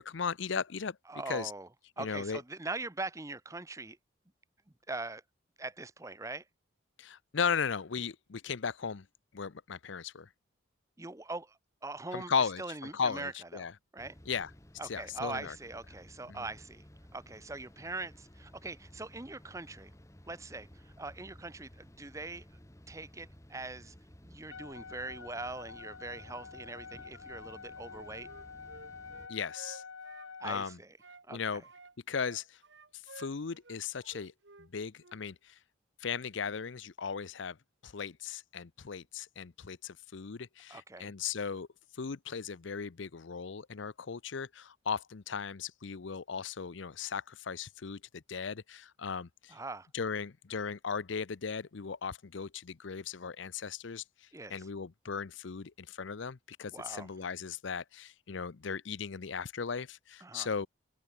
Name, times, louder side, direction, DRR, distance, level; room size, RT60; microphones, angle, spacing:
voice 1, 0.0-1.0 1.3-1.5 2.0-2.4 7.0-9.1 9.3-10.3 12.1-13.7 14.3-14.5 14.8-15.6 16.3-16.5 29.3-29.8 30.4-30.8 31.3-31.6 32.1-32.6 33.1-34.3 34.6-35.5 36.0-37.6 37.8-41.7 42.0-49.6 49.9-54.0 54.5-60.7, left 6 dB, 70° left, 0.6 m, -37 dB
voice 2, 1.1-1.7 2.0-4.0 4.9-5.2 5.6-6.4 11.0-12.3 12.6-13.7 13.9-14.1 14.8-16.8 17.1-19.9 20.3-22.5 22.9-23.9 24.2-28.3 30.4-30.9 31.3-31.4 40.7-41.1 49.5-49.9 54.3-54.6 56.7-57.1 60.2-60.5, right 3 dB, 15° right, 0.8 m, -42 dB
sound 1, 14.0-29.3, equal, 15° left, 1.7 m, -56 dB
Wind instrument woodwind instrument, 24.5-30.6, left 5 dB, 85° left, 1.2 m, -48 dB
Wind instrument woodwind instrument 2, 27.8-31.3 31.6-34.7 35.0-35.2, right 3 dB, 65° right, 1.8 m, -54 dB
open air
head